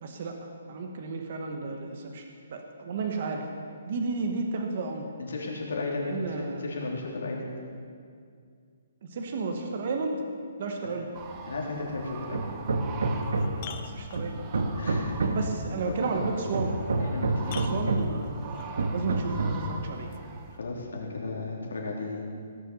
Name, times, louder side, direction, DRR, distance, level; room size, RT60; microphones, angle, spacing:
voice 1, 0.0-2.2 2.5-3.5 3.9-5.1 6.1-6.6 9.0-10.2 10.6-11.1 13.6-14.4 15.3-16.8 17.6-20.1, right 4 dB, 35° right, 3 dB, 1.0 m, -33 dB
voice 2, 5.2-7.5 10.8-10.9 11.5-12.4 14.8-15.2 15.9-16.2 17.0-17.7 20.6-22.2, left 3 dB, 85° left, -1 dB, 3.1 m, -34 dB
sound 1, 11.1-20.6, right 5 dB, 15° right, 0.6 m, -43 dB
Hammer, 12.3-13.7 14.2-15.6 16.2-18.2 18.8-19.7, right 2 dB, 70° right, 1.3 m, -28 dB
sound 2, 12.5-12.6 13.1-14.6 16.6-16.7 17.4-18.7 20.1-20.2, left 9 dB, 25° left, 0.5 m, -44 dB
17.0 x 6.7 x 6.8 m, 2.2 s
hypercardioid pair, 180°, 0 cm